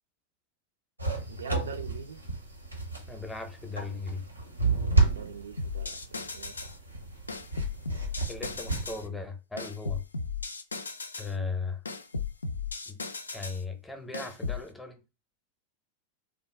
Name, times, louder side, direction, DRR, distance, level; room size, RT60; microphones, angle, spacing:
sound 1, 1.0-9.1, right 3 dB, 90° right, 0.8 m, -31 dB
voice 1, 1.3-2.2 4.9-6.7, right 6 dB, 70° right, 0.4 m, -43 dB
voice 2, 3.1-4.2 8.3-10.0 11.2-11.8 12.9-13.0 13.3-15.0, left 4 dB, 5° left, 0.7 m, -37 dB
sound 2, 5.6-6.8 7.3-9.0 9.6-11.3 11.9-13.6 14.1-14.7, left 4 dB, 75° left, 0.3 m, -36 dB
3.4 x 2.3 x 3.2 m
figure-of-eight pair, 90°, 0 cm